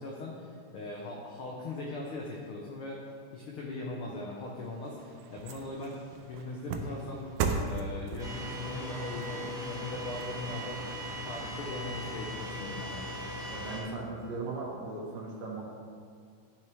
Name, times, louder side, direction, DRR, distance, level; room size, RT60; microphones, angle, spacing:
voice 1, 0.0-3.0 3.3-7.3 7.6-10.9 11.2-13.0, left 2 dB, 85° left, -2 dB, 1.2 m, -40 dB
sound 1, 4.4-10.9 11.4-11.5, right 5 dB, 90° right, 2.3 m, -38 dB
sound 2, 8.2-13.8, left 1 dB, 5° right, 0.7 m, -38 dB
voice 2, 13.5-15.6, right 3 dB, 60° right, -4 dB, 2.3 m, -38 dB
12.5 x 6.4 x 3.5 m, 2.2 s
omnidirectional pair, 3.7 m